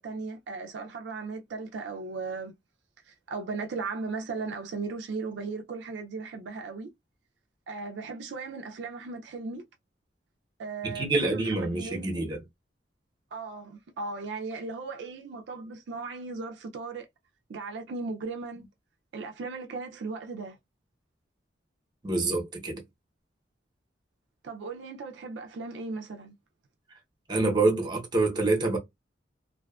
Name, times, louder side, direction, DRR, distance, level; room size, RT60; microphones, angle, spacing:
voice 1, 0.0-2.5 3.0-6.9 7.7-9.6 10.6-12.3 13.3-17.1 17.5-18.6 19.1-20.6 24.4-26.4, right 4 dB, 70° right, 0.4 m, -37 dB
voice 2, 10.8-12.4 22.0-22.8 27.3-28.8, right 3 dB, 25° right, 0.8 m, -26 dB
2.5 x 2.2 x 2.3 m
head